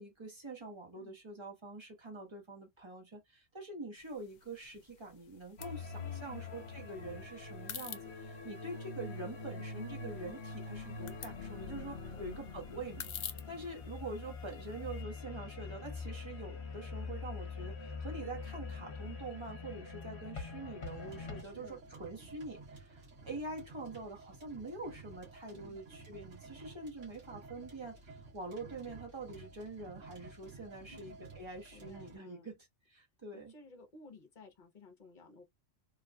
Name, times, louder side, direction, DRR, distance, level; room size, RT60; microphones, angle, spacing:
voice 1, 0.0-13.0 13.3-32.5 32.9-33.5, right 2 dB, 25° right, 1.1 m, -45 dB
sound 1, 4.0-15.0, left 7 dB, 75° left, 0.4 m, -50 dB
sound 2, 5.6-21.4, left 4 dB, 60° left, 1.1 m, -44 dB
voice 2, 6.0-6.5 12.1-12.4 21.4-21.8 25.5-25.8 30.9-31.2 31.7-32.5 33.3-35.4, left 3 dB, 45° left, 1.0 m, -56 dB
sound 3, 20.8-32.2, right 3 dB, 70° right, 1.6 m, -53 dB
3.3 x 2.4 x 2.2 m
omnidirectional pair, 1.3 m